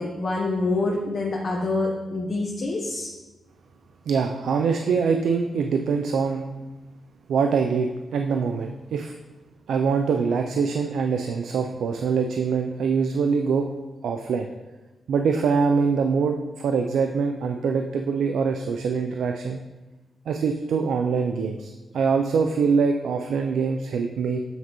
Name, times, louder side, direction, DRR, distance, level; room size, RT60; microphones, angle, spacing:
voice 1, 0.0-3.1, left 2 dB, 45° left, -1 dB, 0.8 m, -26 dB
voice 2, 4.1-6.5 7.3-9.2 9.7-13.7 14.0-14.5 15.1-19.6 20.3-24.4, right 5 dB, 85° right, 4 dB, 0.4 m, -24 dB
8.0 x 4.6 x 3.0 m, 1.2 s
cardioid pair, 110°, 0 cm